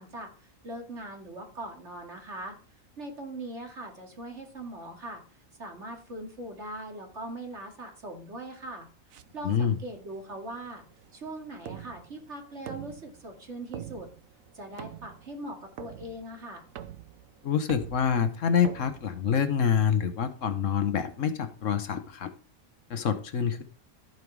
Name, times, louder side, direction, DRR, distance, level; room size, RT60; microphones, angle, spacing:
voice 1, 0.0-2.5 3.0-5.2 5.6-8.9 9.3-10.8 11.1-14.1 14.5-16.6, right 1 dB, 55° right, 2 dB, 2.6 m, -41 dB
sound 1, 9.1-19.8, right 10 dB, 80° right, 1.2 m, -46 dB
voice 2, 9.4-9.8 17.4-22.3 22.9-23.6, left 7 dB, 70° left, 10 dB, 1.3 m, -26 dB
15.5 x 5.4 x 4.7 m, 0.40 s
omnidirectional pair, 1.4 m